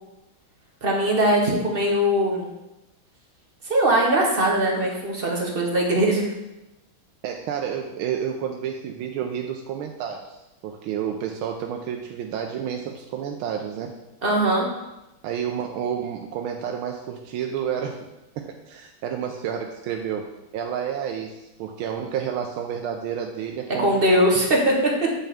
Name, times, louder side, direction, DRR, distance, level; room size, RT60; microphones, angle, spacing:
voice 1, 0.8-2.5 3.6-6.3 14.2-14.7 23.8-24.7, right 1 dB, 35° right, -1 dB, 1.0 m, -21 dB
voice 2, 7.2-14.0 15.2-18.0 18.4-24.3, right 8 dB, 85° right, 2 dB, 1.4 m, -30 dB
8.1 x 5.6 x 3.5 m, 0.94 s
omnidirectional pair, 2.2 m